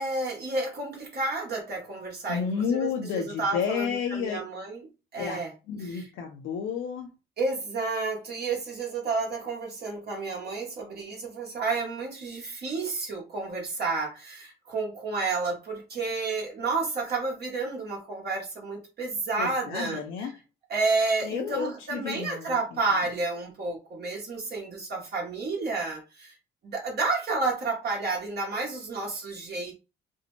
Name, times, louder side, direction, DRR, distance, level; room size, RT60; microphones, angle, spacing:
voice 1, 0.0-4.9 5.1-5.5 5.8-6.1 7.4-20.0 20.7-26.3 26.6-29.7, right 3 dB, 55° right, 0.8 m, -30 dB
voice 2, 2.3-4.4 5.2-7.1 19.4-20.3 21.2-22.5, left 7 dB, 85° left, 0.5 m, -31 dB
2.6 x 2.0 x 3.0 m
cardioid pair, 90°, 20 cm